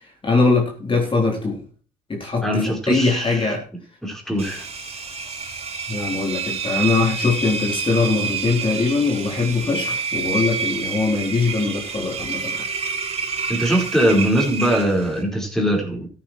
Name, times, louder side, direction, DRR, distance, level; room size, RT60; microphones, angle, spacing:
voice 1, 0.2-1.6 2.1-3.6 5.9-12.6, left 3 dB, 30° left, 1 dB, 4.1 m, -21 dB
voice 2, 2.4-3.6 4.0-4.7 13.5-16.1, equal, 5° left, -1 dB, 4.7 m, -21 dB
Engine, 4.4-15.2, right 5 dB, 40° right, 4.9 m, -28 dB
14.0 x 9.3 x 4.6 m, 0.40 s
cardioid pair, 110°, 17 cm